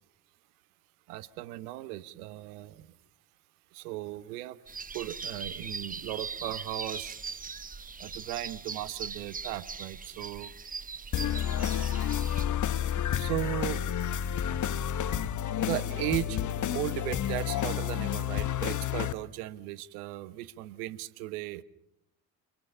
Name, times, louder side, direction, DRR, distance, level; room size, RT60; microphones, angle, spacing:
voice 1, 1.1-3.0 3.7-4.6 4.9-7.2 8.0-10.5 13.0-13.8 15.6-16.4 16.7-21.6, right 15 dB, 70° right, 1.3 m, -36 dB
sound 1, 4.7-12.5, right 5 dB, 15° right, 1.0 m, -40 dB
sound 2, 11.1-19.1, left 10 dB, 40° left, 1.2 m, -30 dB
27.5 x 23.0 x 5.7 m
figure-of-eight pair, 60°, 47 cm